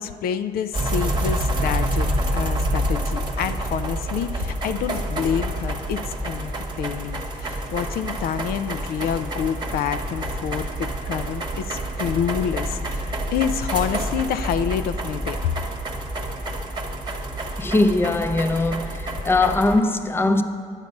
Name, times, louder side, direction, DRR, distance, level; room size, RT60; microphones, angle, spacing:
voice 1, 0.0-6.5 6.8-15.4, left 8 dB, 65° left, 0.4 m, -28 dB
sound 1, 0.7-19.8, right 1 dB, 25° right, 1.1 m, -28 dB
voice 2, 17.6-20.4, left 2 dB, 15° left, 0.5 m, -21 dB
10.5 x 8.1 x 5.2 m
cardioid pair, 110°, 17 cm